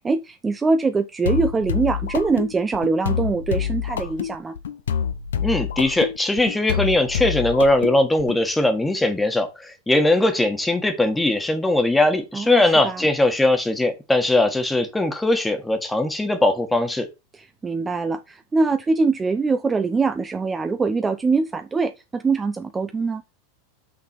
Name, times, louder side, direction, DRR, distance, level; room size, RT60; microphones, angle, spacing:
voice 1, 0.0-4.6 12.3-13.0 17.6-23.2, right 4 dB, 20° right, 0.7 m, -23 dB
sound 1, 1.3-8.4, left 8 dB, 75° left, 0.8 m, -27 dB
voice 2, 5.4-17.1, left 2 dB, 10° left, 1.6 m, -20 dB
6.0 x 5.9 x 4.3 m
figure-of-eight pair, 85°, 0 cm